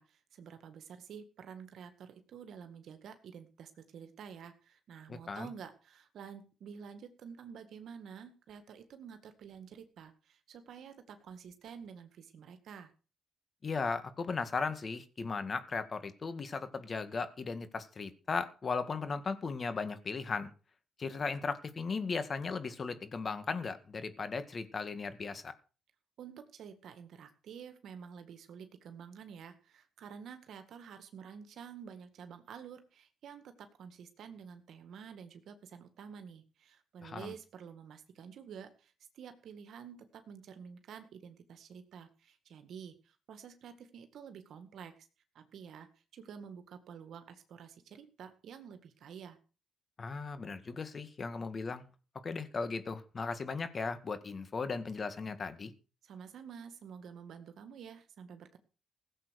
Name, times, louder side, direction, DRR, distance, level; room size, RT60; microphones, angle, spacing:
voice 1, 0.0-12.9 26.2-44.9 45.3-45.9 46.1-49.4 56.0-58.6, right 7 dB, 70° right, 8 dB, 1.9 m, -50 dB
voice 2, 5.1-5.5 13.6-20.5 21.0-25.5 37.0-37.3 50.0-51.8 52.2-55.7, left 4 dB, 40° left, 11 dB, 1.9 m, -37 dB
16.5 x 7.8 x 6.4 m, 0.36 s
cardioid pair, 90°, 0 cm